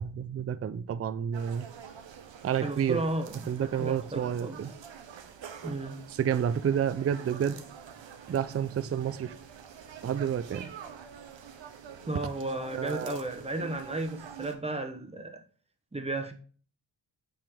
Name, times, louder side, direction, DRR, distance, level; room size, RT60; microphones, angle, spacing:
voice 1, 0.0-1.7 2.4-3.0 3.5-4.7 6.2-7.6 8.3-9.3 10.0-10.7 12.7-13.2, right 8 dB, 35° right, 0.4 m, -30 dB
sound 1, 1.3-14.5, right 7 dB, 85° right, 1.0 m, -47 dB
voice 2, 2.6-4.6 5.6-6.1 12.1-15.4 15.9-16.3, right 2 dB, 15° right, 0.9 m, -34 dB
8.8 x 5.0 x 3.5 m
wide cardioid pair, 145°, 44 cm